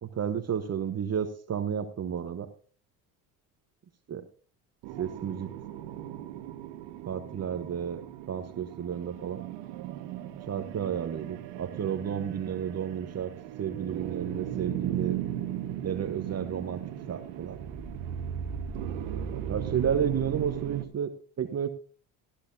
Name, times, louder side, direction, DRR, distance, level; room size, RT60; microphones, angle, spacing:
voice 1, 0.0-2.5 4.1-4.2 5.0-5.5 7.1-9.4 10.5-13.3 13.6-15.2 15.8-17.6 19.3-21.7, right 8 dB, 35° right, 8 dB, 1.1 m, -32 dB
sound 1, 4.8-20.9, right 10 dB, 70° right, 1.3 m, -37 dB
17.0 x 12.0 x 2.7 m, 0.39 s
hypercardioid pair, 70°, 44 cm